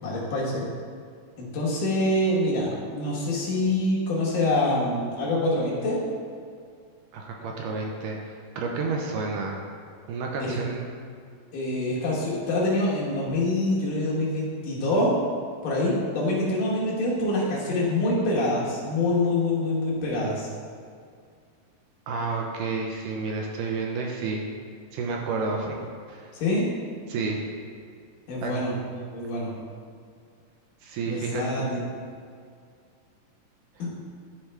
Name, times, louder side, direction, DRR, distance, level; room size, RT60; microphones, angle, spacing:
voice 1, 0.0-0.6 1.4-6.0 10.4-10.5 11.5-15.1 15.6-20.5 26.3-26.7 28.3-29.5 31.0-31.8 33.8-33.9, left 1 dB, 65° left, -6 dB, 2.7 m, -25 dB
voice 2, 7.1-9.6 10.1-10.9 22.1-24.4 24.9-25.8 26.1-26.3 27.1-27.5 28.4-28.5 30.8-32.0, right 4 dB, 80° right, 0 dB, 2.2 m, -30 dB
11.5 x 4.6 x 3.3 m, 2.2 s
omnidirectional pair, 4.1 m